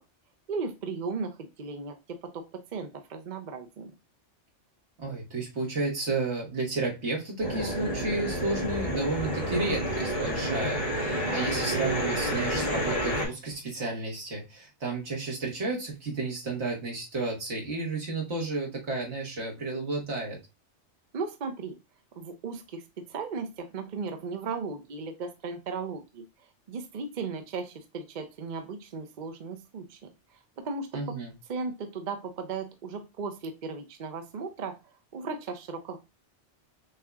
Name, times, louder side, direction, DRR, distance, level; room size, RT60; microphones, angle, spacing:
voice 1, 0.5-3.9 21.1-21.8 22.2-26.2 26.7-30.0 30.6-31.1 31.5-34.7 35.1-36.0, right 4 dB, 50° right, 6 dB, 0.6 m, -36 dB
voice 2, 5.0-20.4 30.9-31.3, right 3 dB, 70° right, -1 dB, 1.8 m, -32 dB
sound 1, 7.4-13.3, equal, 40° left, 1.7 m, -29 dB
6.4 x 2.8 x 2.3 m, 0.25 s
omnidirectional pair, 1.2 m